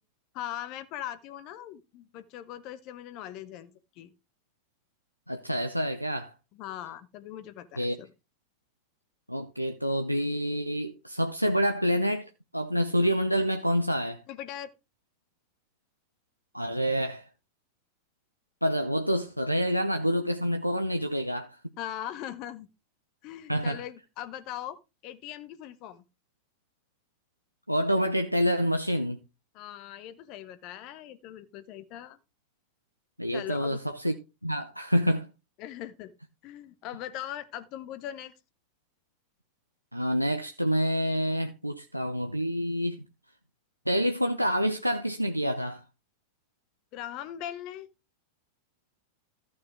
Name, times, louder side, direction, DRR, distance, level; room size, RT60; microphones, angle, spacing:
voice 1, 0.3-4.1 6.5-8.1 14.3-14.7 21.8-22.7 23.2-24.8 25.0-26.0 29.5-32.2 33.3-33.8 35.6-36.1 36.4-38.3 46.9-47.9, left 11 dB, 40° left, 1.1 m, -40 dB
voice 2, 5.3-6.3 7.8-8.0 9.3-14.2 16.5-17.2 18.6-21.6 23.5-23.8 27.7-29.2 33.2-34.1 34.4-35.3 39.9-43.0 43.9-45.8, equal, 90° right, 0.7 m, -27 dB
14.0 x 6.4 x 3.6 m
figure-of-eight pair, 90°, 0 cm